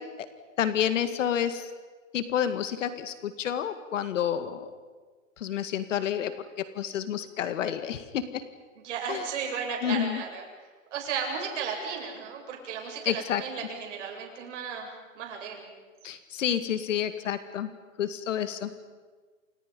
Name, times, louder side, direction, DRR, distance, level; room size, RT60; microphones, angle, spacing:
voice 1, 0.6-1.7 2.1-4.7 5.4-6.3 6.6-8.4 9.1-9.2 9.8-10.2 13.1-13.4 16.0-17.7 18.0-18.7, left 9 dB, 65° left, 10 dB, 2.0 m, -29 dB
voice 2, 8.8-10.4 10.9-15.7, right 6 dB, 60° right, 1 dB, 7.7 m, -34 dB
28.5 x 28.0 x 5.4 m, 1.4 s
hypercardioid pair, 150°, 40 cm